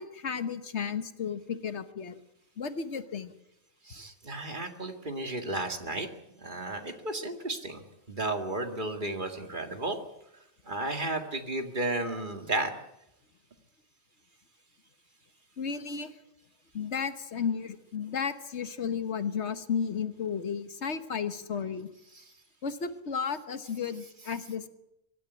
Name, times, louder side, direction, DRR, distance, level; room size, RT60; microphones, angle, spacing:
voice 1, 0.0-2.1 2.6-3.3 15.6-16.1 16.7-21.9 22.6-24.7, left 6 dB, 75° left, 10 dB, 1.5 m, -33 dB
voice 2, 3.9-6.1 6.4-10.0 10.6-12.7 22.1-22.2, right 2 dB, 45° right, 5 dB, 2.2 m, -33 dB
24.0 x 12.5 x 10.0 m, 0.87 s
omnidirectional pair, 1.2 m